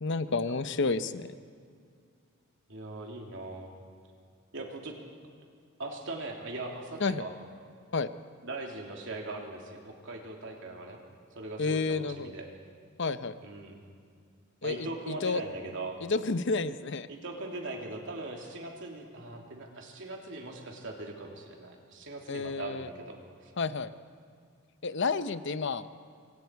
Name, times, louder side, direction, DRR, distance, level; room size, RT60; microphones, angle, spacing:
voice 1, 0.0-1.3 7.0-7.2 7.9-8.1 11.6-12.3 13.0-13.4 14.6-15.4 16.0-17.1 22.3-22.9 23.6-23.9 24.8-25.9, left 4 dB, 60° left, 12 dB, 0.8 m, -30 dB
voice 2, 2.7-3.7 4.5-4.9 5.8-7.3 8.4-11.0 11.3-12.5 13.4-13.8 14.6-16.0 17.1-23.5, right 2 dB, 60° right, 0 dB, 3.2 m, -40 dB
25.5 x 25.0 x 4.8 m, 2.2 s
head